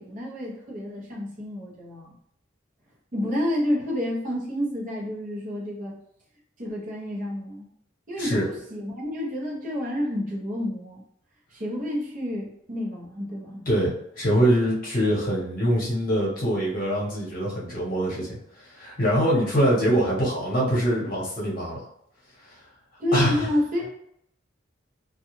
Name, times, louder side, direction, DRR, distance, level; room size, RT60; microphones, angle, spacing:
voice 1, 0.0-2.1 3.1-5.9 6.6-7.7 8.1-11.0 11.5-13.7 23.0-23.9, left 1 dB, 40° right, -3 dB, 0.7 m, -29 dB
voice 2, 13.7-21.8 22.5-22.6 23.1-23.5, equal, 45° left, -5 dB, 1.0 m, -24 dB
2.4 x 2.3 x 3.0 m, 0.73 s
head